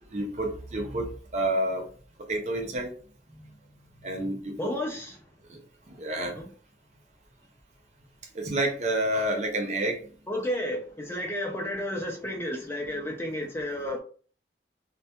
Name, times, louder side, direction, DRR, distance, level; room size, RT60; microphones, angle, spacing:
voice 1, 0.1-1.9 2.3-2.9 4.0-4.7 5.5-5.6 5.9-6.4 8.3-10.1, right 1 dB, 40° right, 0.5 m, -29 dB
voice 2, 4.6-5.2 6.4-6.5 10.3-14.0, left 1 dB, 15° left, 0.4 m, -32 dB
2.3 x 2.1 x 2.8 m
head